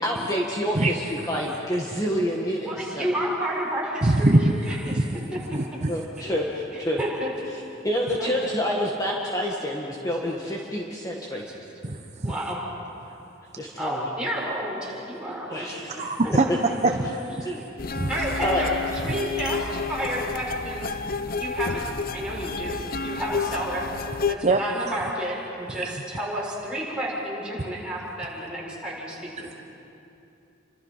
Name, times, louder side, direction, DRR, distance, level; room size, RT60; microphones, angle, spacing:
voice 1, 0.0-3.1 5.9-7.0 7.8-11.4 13.6-14.1 15.5-16.1 17.4-17.6 18.4-18.6 18.9-19.0, equal, 20° left, -2 dB, 1.8 m, -28 dB
voice 2, 0.7-1.3 4.0-4.5 4.8-5.1 5.5-5.9 11.8-12.3 16.0-16.4 17.4-17.5 18.0-18.1 24.4-24.6 25.8-26.0, right 2 dB, 35° right, 4 dB, 0.9 m, -23 dB
voice 3, 2.7-5.0 5.3-5.4 6.2-6.3 6.7-7.3 8.2-8.3 11.3-11.4 12.2-12.6 13.8-15.7 16.0-16.3 16.7-16.8 17.5-17.6 18.1-18.8 19.0-20.9 21.4-23.8 24.3-29.5, right 1 dB, 5° right, -6 dB, 6.9 m, -31 dB
sound 1, 17.8-24.3, left 4 dB, 50° left, 0.8 m, -30 dB
29.5 x 25.5 x 5.8 m, 2.8 s
head